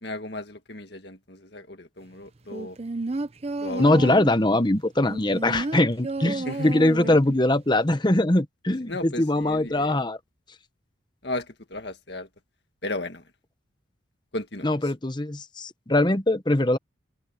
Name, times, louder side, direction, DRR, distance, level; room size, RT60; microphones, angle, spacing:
voice 1, 0.0-2.8 3.6-4.2 6.4-6.7 7.0-7.2 8.9-10.0 11.2-12.3 12.8-13.2 14.3-14.7, left 2 dB, 55° left, 2.0 m, -35 dB
sound 1, 2.5-4.4 5.0-7.4 7.7-7.8, right 2 dB, 30° right, 0.6 m, -31 dB
voice 2, 3.8-10.2 14.6-16.8, left 1 dB, 20° left, 1.0 m, -22 dB
head